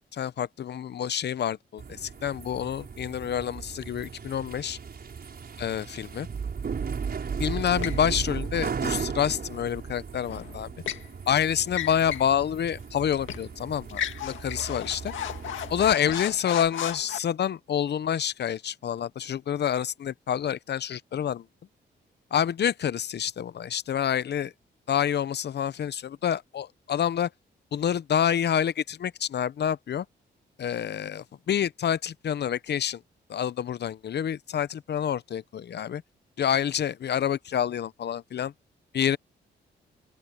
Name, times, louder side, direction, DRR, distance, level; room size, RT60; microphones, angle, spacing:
voice 1, 0.1-4.8 5.6-6.3 7.4-10.7 11.3-15.1 15.7-21.4 22.3-24.5 24.9-27.3 27.7-30.0 30.6-33.0 33.3-36.0 36.4-38.5 38.9-39.2, left 9 dB, 60° left, 0.8 m, -28 dB
sound 1, 1.8-15.9, right 6 dB, 55° right, 5.3 m, -36 dB
sound 2, 7.8-8.1 10.3-11.1 11.7-12.3 12.7-12.8 13.3-13.5 13.9-17.2, left 10 dB, 85° left, 1.9 m, -34 dB
open air
cardioid pair, 70°, 19 cm